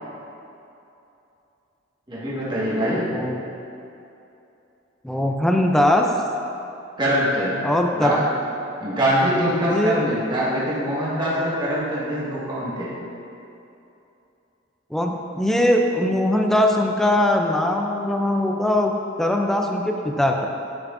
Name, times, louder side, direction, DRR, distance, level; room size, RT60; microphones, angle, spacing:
voice 1, 2.1-3.1 7.0-7.6 7.9-8.2 8.8-12.9, equal, 25° right, -8 dB, 1.7 m, -23 dB
voice 2, 5.0-6.1 7.6-8.2 9.3-10.0 14.9-18.9 19.2-20.5, left 1 dB, ahead, 2 dB, 0.4 m, -21 dB
10.0 x 6.1 x 2.6 m, 2.8 s
head